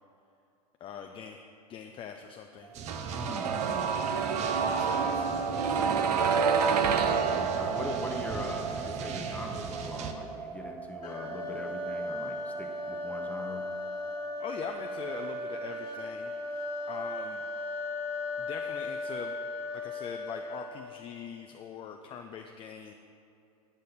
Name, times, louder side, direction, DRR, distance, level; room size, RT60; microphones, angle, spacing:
voice 1, 0.8-1.4 1.7-2.7 3.5-3.8 4.4-6.4 14.4-17.4 18.4-19.4 19.7-22.9, left 7 dB, 25° left, 4 dB, 0.4 m, -43 dB
sound 1, 2.7-10.1, right 6 dB, 35° right, 0.6 m, -40 dB
sound 2, 2.9-14.7 15.0-15.1, right 6 dB, 90° right, 0.5 m, -30 dB
voice 2, 3.1-4.0 7.0-13.7, left 2 dB, 5° left, 2 dB, 0.9 m, -42 dB
sound 3, 11.0-21.0, left 2 dB, 85° left, 1.2 m, -36 dB
8.7 x 6.3 x 4.2 m, 2.5 s
hypercardioid pair, 100°, 20 cm